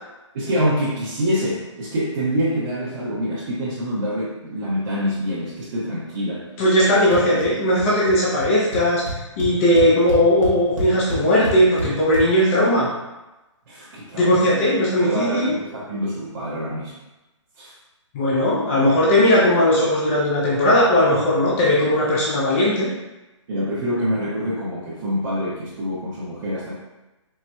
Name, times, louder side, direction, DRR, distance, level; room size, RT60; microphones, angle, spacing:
voice 1, 0.3-6.4 13.7-14.4 15.0-16.9 17.6-17.7 23.5-26.7, equal, 40° right, -9 dB, 0.7 m, -26 dB
voice 2, 6.6-9.0 9.4-12.9 14.1-15.5 18.1-22.9, left 1 dB, 25° left, -6 dB, 0.5 m, -18 dB
sound 1, 7.1-7.5 7.7-8.1 8.4-8.5 8.7-12.2, right 2 dB, 75° right, 0.9 m, -28 dB
4.3 x 2.0 x 2.2 m, 1.0 s
hypercardioid pair, 150°, 16 cm